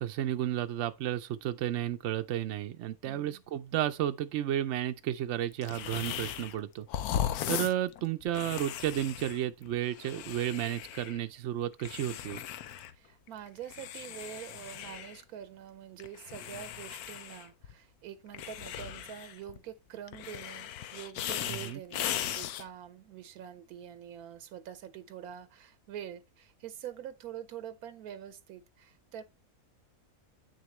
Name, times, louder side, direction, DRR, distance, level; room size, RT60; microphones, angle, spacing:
voice 1, 0.0-6.9 7.5-12.4 21.5-21.8, right 12 dB, 65° right, 0.7 m, -32 dB
voice 2, 3.0-3.4 12.9-29.2, right 10 dB, 85° right, 1.1 m, -45 dB
sound 1, 5.6-6.6 6.9-11.2 11.8-12.9 13.3-15.2 16.0-17.7 18.3-19.6 20.1-22.7, left 10 dB, 90° left, 1.1 m, -38 dB
8.4 x 6.5 x 3.1 m
omnidirectional pair, 1.6 m